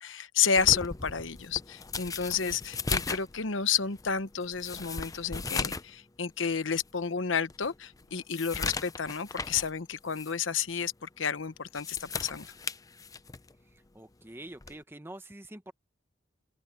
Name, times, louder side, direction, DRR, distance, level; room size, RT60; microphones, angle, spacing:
voice 1, 0.0-12.5, left 7 dB, 85° left, 1.0 m, -31 dB
sound 1, 0.5-5.9 6.3-6.4 7.0-7.1 7.5-9.7 10.1-10.3 11.6-13.5 14.6-14.8, left 4 dB, 20° left, 0.5 m, -37 dB
voice 2, 13.9-15.7, right 1 dB, 10° right, 1.1 m, -45 dB
head